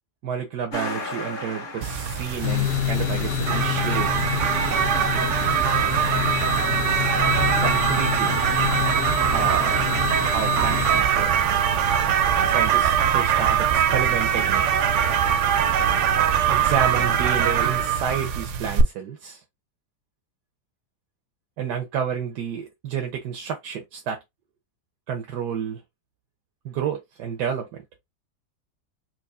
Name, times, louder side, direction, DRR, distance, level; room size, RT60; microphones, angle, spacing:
voice 1, 0.2-4.1 7.6-8.4 9.2-9.8 10.2-11.3 12.4-14.7 16.5-19.4 21.6-24.2 25.1-25.8 26.6-27.8, right 7 dB, 90° right, 1.3 m, -30 dB
Truck, 0.7-6.9, left 2 dB, 40° left, 0.9 m, -38 dB
sound 1, 1.8-18.8, right 8 dB, 65° right, 0.8 m, -22 dB
sound 2, 2.4-11.0, left 13 dB, 80° left, 0.5 m, -28 dB
4.6 x 2.5 x 2.4 m
omnidirectional pair, 1.7 m